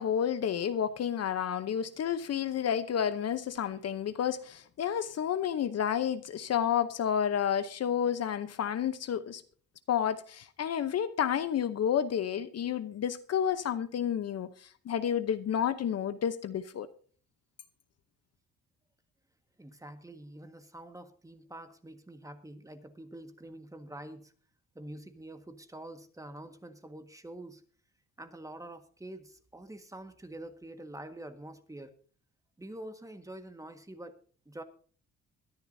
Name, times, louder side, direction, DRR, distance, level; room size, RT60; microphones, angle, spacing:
voice 1, 0.0-9.4 9.9-16.9, left 8 dB, 55° left, 0.8 m, -30 dB
voice 2, 19.6-24.3 24.7-27.6 28.2-32.0 32.6-34.1 34.4-34.6, right 1 dB, 10° right, 1.6 m, -46 dB
22.0 x 10.5 x 2.7 m
cardioid pair, 90°, 30 cm